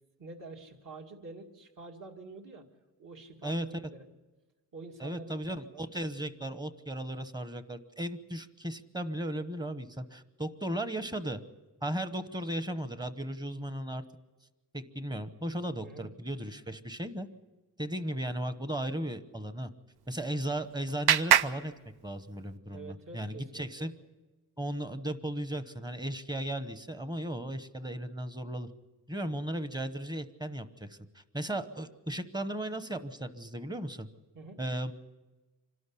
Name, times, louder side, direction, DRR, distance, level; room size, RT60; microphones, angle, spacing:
voice 1, 0.2-2.7 3.0-4.0 4.7-5.9 15.8-16.1 22.7-23.9 34.3-34.6, right 3 dB, 55° right, 2 dB, 2.3 m, -47 dB
voice 2, 5.0-11.4 11.8-14.0 14.7-17.3 17.8-19.7 20.1-21.7 22.0-23.9 24.6-28.7 29.1-34.1 34.6-34.9, right 1 dB, 10° right, 11 dB, 0.9 m, -36 dB
Clapping, 20.0-22.6, right 9 dB, 85° right, 0.7 m, -29 dB
26.0 x 12.5 x 9.9 m, 1.1 s
wide cardioid pair, 160°, 37 cm